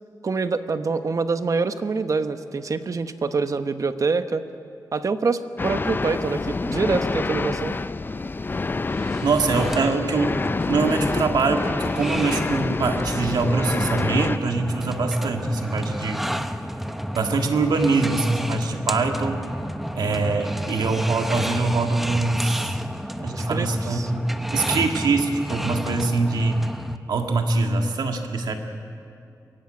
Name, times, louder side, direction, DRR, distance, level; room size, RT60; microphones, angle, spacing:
voice 1, 0.2-4.4 4.9-7.8 23.3-24.1, right 4 dB, 55° right, 9 dB, 1.0 m, -25 dB
Crazy Ambience, 5.6-14.4, left 3 dB, 30° left, 0.5 m, -27 dB
sound 1, 8.9-27.0, equal, 5° right, 0.9 m, -31 dB
voice 2, 9.0-10.3 10.7-16.2 17.2-19.4 19.9-22.8 23.2-26.6 27.1-28.5, right 3 dB, 85° right, 4 dB, 1.9 m, -23 dB
23.0 x 16.5 x 9.0 m, 2.6 s
wide cardioid pair, 90°, 7 cm